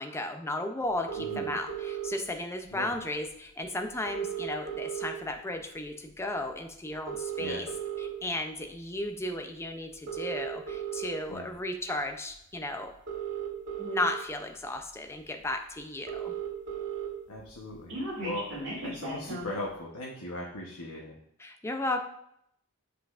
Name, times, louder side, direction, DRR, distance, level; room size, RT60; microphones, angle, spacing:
voice 1, 0.0-7.7 8.0-12.9 13.8-16.3 21.4-22.0, left 1 dB, 10° left, 5 dB, 0.5 m, -34 dB
sound 1, 1.1-2.1 3.3-3.4 3.6-3.7 3.9-5.4 5.8-6.1 6.9-8.1 8.8-9.0 9.9-11.1 12.3-12.4 12.9-14.1 14.8-14.9 15.1-15.2 15.5-15.6 15.8-17.1 17.4-19.6, right 7 dB, 55° right, 2.5 m, -35 dB
voice 2, 1.2-1.6 2.7-2.9 7.4-7.6 11.3-11.5 17.3-18.5 18.8-21.2, left 1 dB, 85° left, -3 dB, 1.0 m, -38 dB
7.7 x 5.6 x 2.5 m, 0.75 s
head